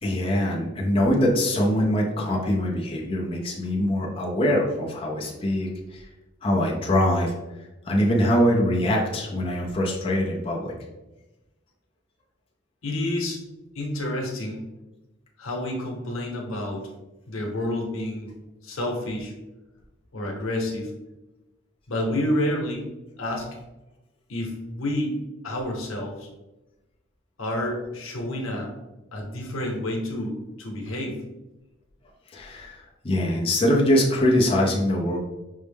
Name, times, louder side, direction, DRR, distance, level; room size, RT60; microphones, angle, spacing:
voice 1, 0.0-6.1 6.4-7.3 7.9-10.7 32.3-35.2, left 1 dB, 25° left, -3 dB, 0.6 m, -23 dB
voice 2, 12.8-13.4 13.7-14.6 15.4-16.9 17.3-18.3 18.6-19.3 20.1-20.9 21.9-22.9 23.2-23.5 24.3-25.2 25.4-26.3 27.4-28.7 29.1-31.2, left 1 dB, 90° left, 0 dB, 0.9 m, -29 dB
5.4 x 2.1 x 3.4 m, 1.0 s
head